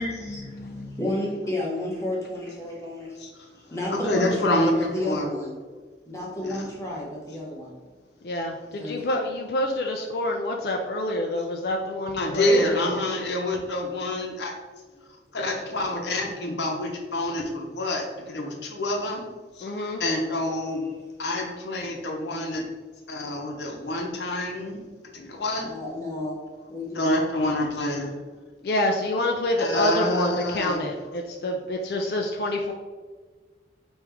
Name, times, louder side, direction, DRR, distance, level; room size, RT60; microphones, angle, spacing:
voice 1, 0.0-5.5 6.1-7.8 8.7-9.1 20.6-20.9 21.4-21.5 25.6-26.4 26.7-27.2, left 1 dB, 15° left, -4 dB, 0.8 m, -32 dB
voice 2, 3.9-5.3 6.4-6.6 12.2-14.5 15.3-19.3 19.6-20.8 21.2-22.6 23.1-24.8 25.1-25.7 27.0-28.1 29.6-30.9, left 1 dB, 80° left, 1 dB, 0.8 m, -27 dB
voice 3, 8.2-13.0 19.6-20.0 28.6-32.7, left 1 dB, 60° left, 2 dB, 0.4 m, -27 dB
4.9 x 3.1 x 3.5 m, 1.4 s
head